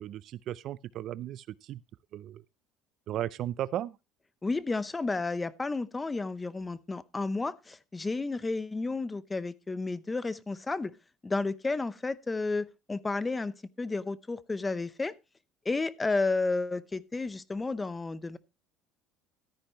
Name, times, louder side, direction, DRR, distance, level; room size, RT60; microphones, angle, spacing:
voice 1, 0.0-1.8 2.1-2.4 3.1-4.0, right 12 dB, 50° right, 0.4 m, -35 dB
voice 2, 4.4-10.9 11.2-13.5 13.8-15.1 15.6-18.4, left 3 dB, 15° left, 0.7 m, -32 dB
13.0 x 10.0 x 3.0 m
cardioid pair, 145°, 0 cm